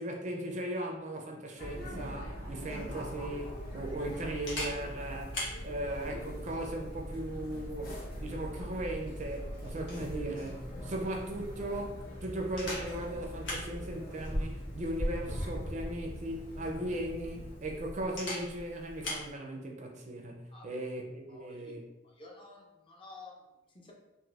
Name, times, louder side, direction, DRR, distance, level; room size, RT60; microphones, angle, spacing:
voice 1, 0.0-21.8, right 1 dB, 40° right, 1 dB, 0.4 m, -38 dB
sound 1, 1.6-17.6, equal, 50° left, 0.8 m, -43 dB
Camera, 2.6-19.3, left 1 dB, 75° left, 1.2 m, -42 dB
voice 2, 20.5-20.9 21.3-21.8 22.0-23.9, left 2 dB, 25° left, -1 dB, 0.5 m, -52 dB
4.0 x 2.4 x 2.4 m, 1.0 s
head